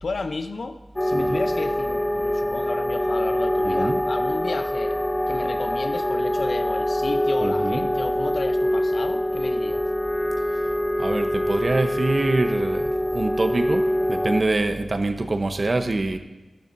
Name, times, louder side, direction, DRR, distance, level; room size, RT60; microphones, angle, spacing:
voice 1, 0.0-5.0 5.3-9.9 14.8-14.9, left 3 dB, 75° left, 0.7 m, -33 dB
sound 1, 1.0-14.4, left 1 dB, 20° left, 0.5 m, -24 dB
voice 2, 3.6-4.0 7.4-7.9 11.0-16.2, right 2 dB, 50° right, 0.8 m, -25 dB
14.0 x 11.5 x 2.6 m
cardioid pair, 45°, 0 cm